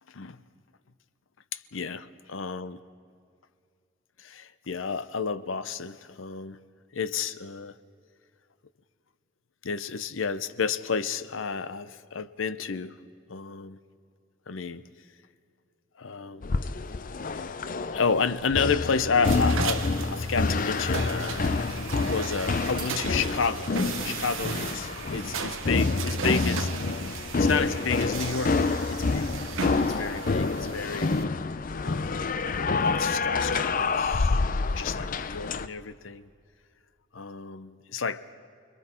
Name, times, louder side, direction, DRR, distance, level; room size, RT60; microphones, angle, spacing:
voice 1, 1.5-2.8 4.2-6.6 6.9-7.7 9.6-13.0 13.3-13.8 14.5-14.8 16.0-16.5 17.3-17.4 17.9-21.7 22.0-23.8 24.0-27.0 27.4-29.3 29.9-31.2 31.8-32.4 32.8-34.4 34.7-36.3 37.1-38.3, left 5 dB, 85° left, 0.8 m, -31 dB
sound 1, 16.4-35.7, left 3 dB, 45° left, 0.5 m, -28 dB
sound 2, 19.2-31.2, right 6 dB, 90° right, 0.9 m, -37 dB
29.5 x 21.5 x 4.5 m
head